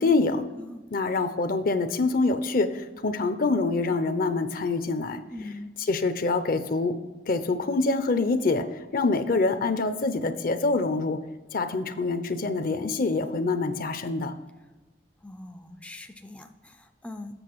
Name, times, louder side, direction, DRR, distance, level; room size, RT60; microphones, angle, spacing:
voice 1, 0.0-0.4 0.9-5.2 5.9-6.9 7.3-8.7 8.9-11.2 11.5-14.3, left 3 dB, 55° left, 10 dB, 0.6 m, -25 dB
voice 2, 0.5-1.1 5.3-5.7 15.2-17.4, left 2 dB, 10° left, 6 dB, 0.4 m, -42 dB
7.9 x 6.5 x 4.6 m, 1.2 s
head